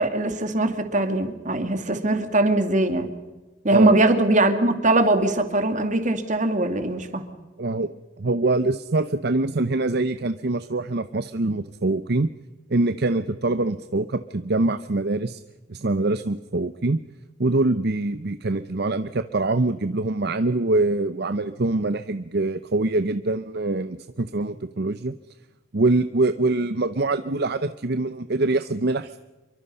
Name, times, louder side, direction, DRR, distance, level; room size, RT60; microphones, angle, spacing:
voice 1, 0.0-3.1 3.6-7.2, right 2 dB, 40° right, 7 dB, 2.4 m, -21 dB
voice 2, 7.6-7.9 8.2-12.3 12.7-15.4 15.7-17.0 17.4-25.1 25.7-29.2, right 2 dB, 55° right, 11 dB, 0.8 m, -24 dB
27.0 x 23.5 x 5.6 m, 1.2 s
head